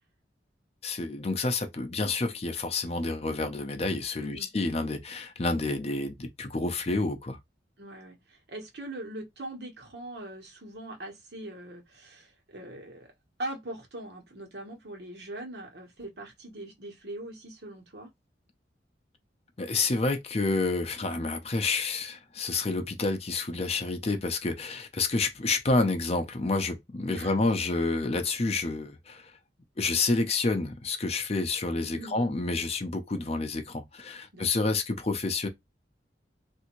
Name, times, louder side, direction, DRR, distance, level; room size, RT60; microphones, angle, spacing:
voice 1, 0.8-7.4 19.6-29.3 29.8-35.5, left 3 dB, 35° left, 0.6 m, -29 dB
voice 2, 4.2-4.5 7.8-13.1 13.4-18.1 27.1-27.3 32.0-32.3 34.3-34.5, right 1 dB, 65° right, 1.2 m, -41 dB
3.3 x 2.6 x 3.0 m
head